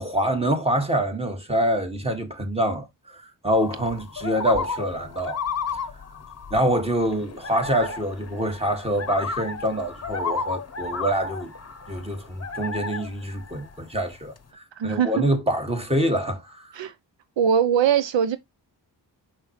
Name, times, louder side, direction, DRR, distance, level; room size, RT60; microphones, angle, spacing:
voice 1, 0.0-5.4 5.7-5.9 6.5-11.5 11.9-16.8, equal, 15° right, 2.0 m, -26 dB
sound 1, 3.5-14.4, left 4 dB, 35° left, 0.9 m, -33 dB
voice 2, 14.8-15.2 16.7-16.9 17.4-18.4, right 8 dB, 75° right, 0.7 m, -21 dB
6.2 x 5.4 x 3.2 m
cardioid pair, 60°, 44 cm